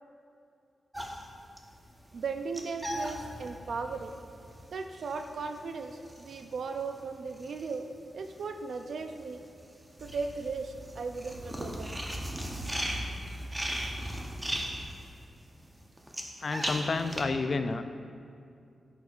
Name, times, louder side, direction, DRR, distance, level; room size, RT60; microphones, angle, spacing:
sound 1, 0.9-8.4 8.7-17.2, equal, 10° right, 0.7 m, -38 dB
voice 1, 2.1-4.1 4.7-7.9 8.1-9.4 10.0-12.0, right 4 dB, 70° right, 6 dB, 0.4 m, -37 dB
voice 2, 16.4-17.8, left 3 dB, 45° left, 9 dB, 0.3 m, -30 dB
12.5 x 4.6 x 2.4 m, 2.4 s
wide cardioid pair, 110°, 0 cm